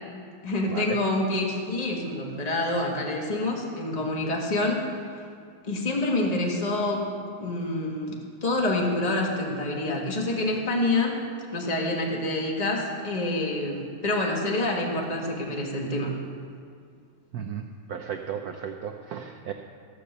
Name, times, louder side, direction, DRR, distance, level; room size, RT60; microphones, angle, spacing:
voice 1, 0.4-4.8 5.7-7.1 7.4-11.2 11.5-16.1, left 2 dB, 20° left, -1 dB, 1.4 m, -27 dB
voice 2, 17.3-19.5, right 8 dB, 75° right, 4 dB, 0.8 m, -35 dB
14.5 x 6.7 x 6.7 m, 2.3 s
omnidirectional pair, 2.3 m